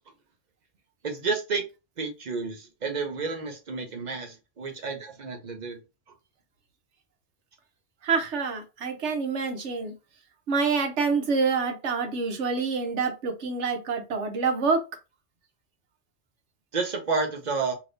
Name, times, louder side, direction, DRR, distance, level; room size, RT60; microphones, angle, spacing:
voice 1, 1.0-1.6 2.0-5.8 16.7-17.7, right 4 dB, 45° right, 0.8 m, -30 dB
voice 2, 8.0-9.9 10.5-14.8, right 4 dB, 75° right, 1.1 m, -27 dB
3.4 x 2.9 x 2.6 m
omnidirectional pair, 1.2 m